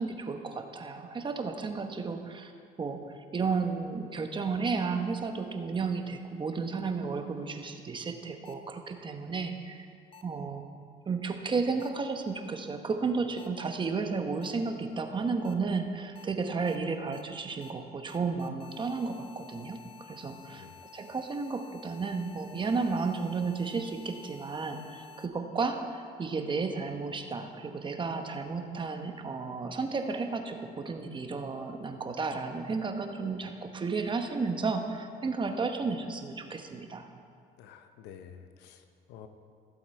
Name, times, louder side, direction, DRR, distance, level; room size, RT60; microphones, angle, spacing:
voice 1, 0.0-2.5 2.8-3.0 3.3-9.9 10.2-10.6 11.1-20.7 20.9-37.1, right 4 dB, 30° right, 6 dB, 1.0 m, -33 dB
sound 1, 8.4-8.5 10.1-10.2 11.8-11.9 13.4-13.5 14.4-14.5 15.4-15.5 16.1-16.2 16.7-16.8 17.1-17.2 17.6-17.7 18.1-25.3, left 8 dB, 35° left, 0.8 m, -52 dB
voice 2, 20.2-20.7 37.6-39.3, left 8 dB, 90° left, 8 dB, 0.8 m, -50 dB
15.0 x 7.7 x 4.4 m, 2.2 s
cardioid pair, 110°, 17 cm